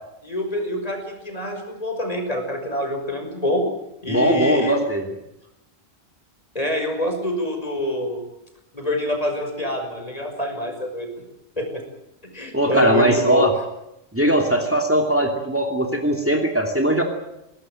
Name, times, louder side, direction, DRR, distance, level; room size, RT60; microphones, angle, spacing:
voice 1, 0.2-3.6 4.0-4.8 6.5-8.2 8.7-11.1 11.6-11.8 12.2-13.4, left 1 dB, 35° left, 4 dB, 5.9 m, -26 dB
voice 2, 4.1-5.0 12.5-13.5 14.1-17.0, right 1 dB, 10° right, 3 dB, 2.8 m, -20 dB
21.5 x 19.0 x 9.0 m, 0.87 s
omnidirectional pair, 1.1 m